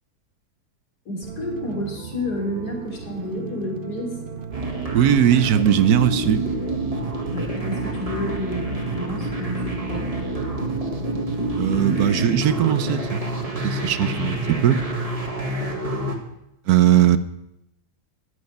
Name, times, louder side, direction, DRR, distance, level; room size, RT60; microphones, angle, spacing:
voice 1, 1.1-4.1 7.3-10.1 15.5-15.7, equal, 80° left, 3.8 m, -30 dB
sound 1, 1.2-15.1, right 6 dB, 40° right, 0.8 m, -37 dB
sound 2, 4.5-16.2, right 1 dB, 20° right, 1.7 m, -28 dB
voice 2, 4.9-6.4 11.6-13.2 13.6-14.8 16.7-17.2, right 10 dB, 75° right, 1.2 m, -19 dB
13.5 x 6.4 x 9.5 m
omnidirectional pair, 1.7 m